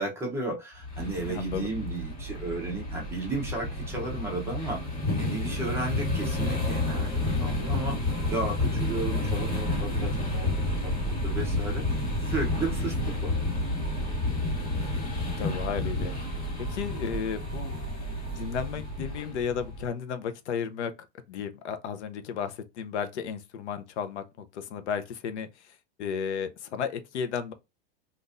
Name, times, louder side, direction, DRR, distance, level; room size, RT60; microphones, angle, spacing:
voice 1, 0.0-4.8 5.1-8.0 8.3-10.5 10.8-11.8 12.2-13.3, right 2 dB, 5° right, 0.7 m, -34 dB
sound 1, 0.8-19.9, left 2 dB, 25° left, 1.7 m, -30 dB
voice 2, 1.1-1.7 15.4-16.4 16.7-17.8 18.4-20.9 21.3-27.5, left 7 dB, 85° left, 0.7 m, -34 dB
3.8 x 2.6 x 2.5 m
supercardioid pair, 155°, 33 cm